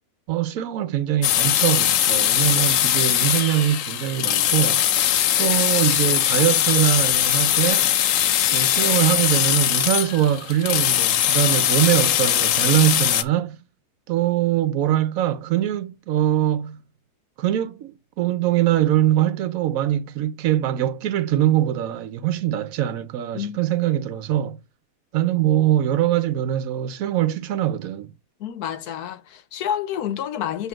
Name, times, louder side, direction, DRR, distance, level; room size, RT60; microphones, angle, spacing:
voice 1, 0.3-4.9 5.4-7.9 8.5-13.6 14.1-16.8 17.4-24.6 25.1-28.1, right 12 dB, 70° right, 1.0 m, -22 dB
sound 1, 1.2-13.2, left 11 dB, 70° left, 0.9 m, -20 dB
voice 2, 28.4-30.7, left 9 dB, 90° left, 1.3 m, -29 dB
7.8 x 3.0 x 6.2 m
omnidirectional pair, 1.6 m